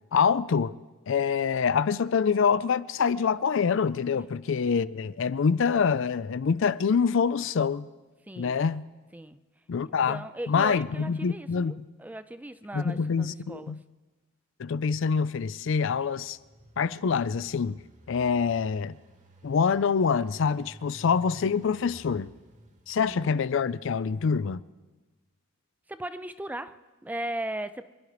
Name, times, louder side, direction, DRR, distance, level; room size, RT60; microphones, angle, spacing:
voice 1, 0.1-0.8 1.1-7.9 8.4-8.8 9.7-11.9 12.7-13.8 14.6-16.4 16.8-17.8 18.1-19.0 19.4-22.3 22.9-24.6, left 6 dB, 65° left, 0.4 m, -25 dB
voice 2, 8.3-8.6 9.1-9.4 9.8-13.8 23.0-23.3 25.9-27.9, right 1 dB, 10° right, 0.4 m, -38 dB
Engine, 16.0-23.9, equal, 35° right, 1.4 m, -53 dB
26.0 x 10.5 x 4.9 m
head